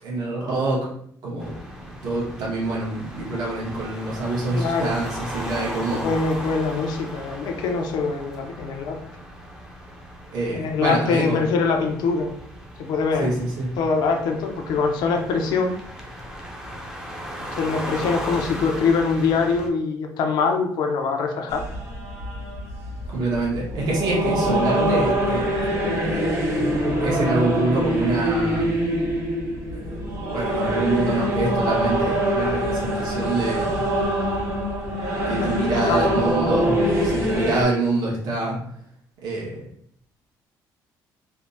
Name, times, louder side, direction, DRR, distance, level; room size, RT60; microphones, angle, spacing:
voice 1, 0.0-0.9 1.2-1.5 1.8-6.1 10.3-11.4 13.2-13.7 23.1-25.7 27.0-28.7 29.7-33.9 35.2-36.7 37.0-38.5 39.2-39.6, right 2 dB, 65° right, -4 dB, 1.0 m, -26 dB
sound 1, 1.4-19.7, equal, 5° right, 0.5 m, -37 dB
voice 2, 4.5-4.9 5.9-9.0 10.5-12.3 12.8-13.3 13.8-15.8 17.4-21.6 35.4-35.5 35.8-36.1 37.3-37.4, left 4 dB, 75° left, 3 dB, 0.5 m, -23 dB
sound 2, 21.5-37.6, equal, 45° right, 1.4 m, -24 dB
3.2 x 2.0 x 2.6 m, 0.65 s
cardioid pair, 125°, 7 cm